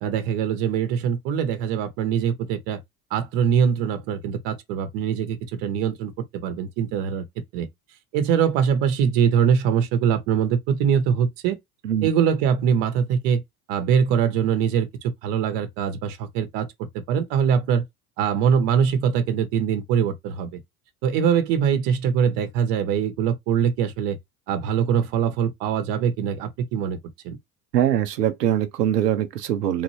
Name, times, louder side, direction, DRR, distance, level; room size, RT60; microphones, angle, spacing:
voice 1, 0.0-2.8 3.1-7.2 7.5-7.7 8.1-11.6 12.0-13.4 13.7-16.7 16.9-17.8 18.2-20.6 21.0-24.2 24.5-27.0 27.2-27.4, right 7 dB, 60° right, 1.2 m, -23 dB
voice 2, 27.7-29.8, right 11 dB, 85° right, 0.8 m, -22 dB
3.6 x 2.6 x 3.2 m
hypercardioid pair, 75°, 47 cm